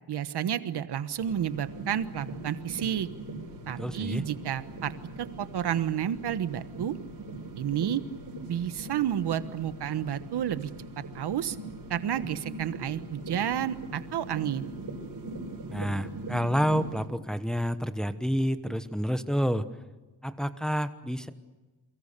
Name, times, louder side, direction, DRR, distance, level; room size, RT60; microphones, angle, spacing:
voice 1, 0.1-3.1 3.7-4.9 5.2-7.0 7.6-8.0 8.5-10.7 11.1-11.6 11.9-14.7, right 9 dB, 75° right, 12 dB, 1.3 m, -30 dB
sound 1, 1.2-17.1, right 2 dB, 55° right, 5.6 m, -41 dB
voice 2, 3.8-4.2 15.7-19.7 20.2-21.3, equal, ahead, 10 dB, 1.1 m, -29 dB
29.0 x 23.5 x 6.7 m, 1.2 s
wide cardioid pair, 130°, 41 cm